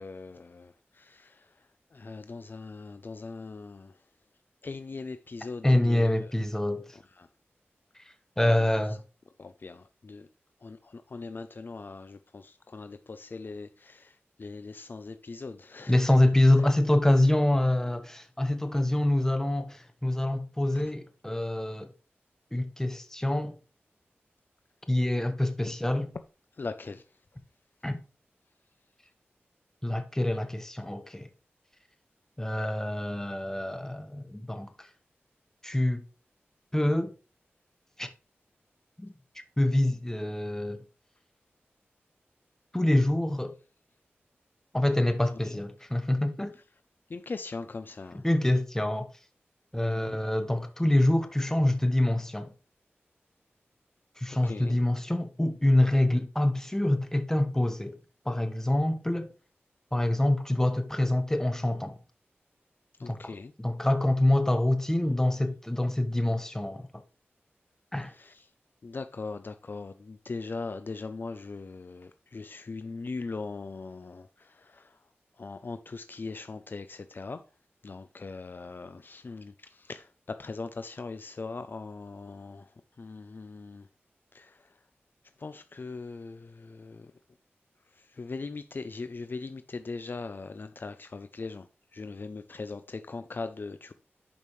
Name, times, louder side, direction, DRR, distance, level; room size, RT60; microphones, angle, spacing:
voice 1, 0.0-4.0 4.6-6.1 6.9-7.3 8.4-8.8 9.4-10.3 10.6-16.0 20.7-20.8 26.5-27.0 45.5-45.6 47.1-48.3 49.9-50.2 54.3-54.8 63.0-63.5 68.1-68.5 68.8-75.0 75.4-77.4 77.8-83.9 84.3-84.8 85.4-87.1 87.9-91.7 91.9-93.9, left 3 dB, 50° left, 0.5 m, -40 dB
voice 2, 5.6-7.0 8.0-8.1 8.4-9.0 15.9-21.9 22.5-23.5 24.9-26.1 27.8-28.0 29.8-31.3 32.4-34.9 35.6-36.0 36.7-37.1 38.0-38.1 39.0-40.8 42.7-43.5 44.7-46.5 48.2-49.1 49.7-52.5 54.2-58.0 58.2-59.3 59.9-62.0 63.1-67.0 67.9-68.1, left 1 dB, 10° left, 1.2 m, -26 dB
11.0 x 5.4 x 3.2 m
wide cardioid pair, 75°, 4 cm